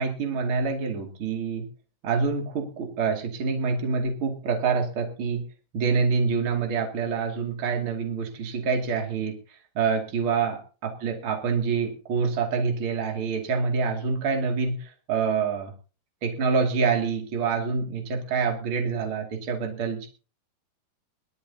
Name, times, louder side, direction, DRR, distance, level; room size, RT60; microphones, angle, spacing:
voice 1, 0.0-1.7 2.0-5.4 5.7-9.3 9.7-15.7 16.2-20.1, right 5 dB, 35° right, 2 dB, 2.6 m, -26 dB
22.0 x 13.0 x 2.8 m, 0.35 s
omnidirectional pair, 4.8 m